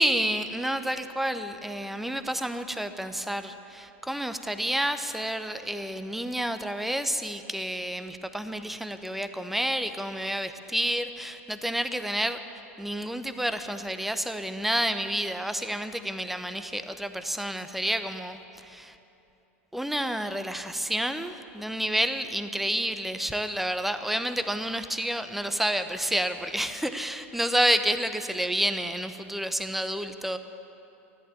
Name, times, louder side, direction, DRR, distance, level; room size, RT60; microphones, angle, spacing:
voice 1, 0.0-19.0 19.7-30.4, right 1 dB, ahead, 10 dB, 0.8 m, -29 dB
13.5 x 11.0 x 8.2 m, 2.9 s
hypercardioid pair, 95°, 7 cm